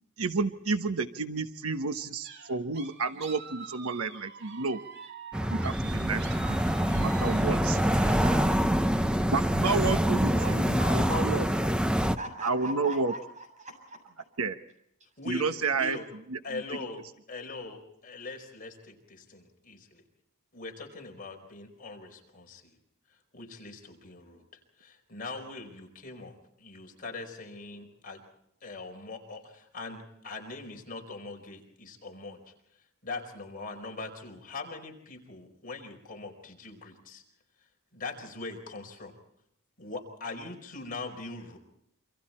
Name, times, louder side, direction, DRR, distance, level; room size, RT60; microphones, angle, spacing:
voice 1, 0.2-4.8 5.5-7.8 9.3-11.5 12.4-13.1 14.4-14.6 15.3-16.0 16.3-16.6, right 4 dB, 75° right, 8 dB, 1.2 m, -31 dB
sound 1, 2.2-8.1, right 6 dB, 55° right, 2.2 m, -46 dB
sound 2, 5.3-12.2, equal, 5° right, 0.8 m, -25 dB
voice 2, 7.3-9.3 10.2-14.0 16.7-17.0, right 2 dB, 35° right, 4 dB, 7.9 m, -42 dB
voice 3, 15.2-16.0 16.4-17.0 17.3-20.0 20.5-22.8 23.3-24.4 24.8-28.2 28.6-32.5 33.0-37.2 37.9-39.1 39.8-41.6, left 3 dB, 40° left, 3 dB, 4.7 m, -41 dB
28.0 x 26.0 x 4.4 m, 0.77 s
head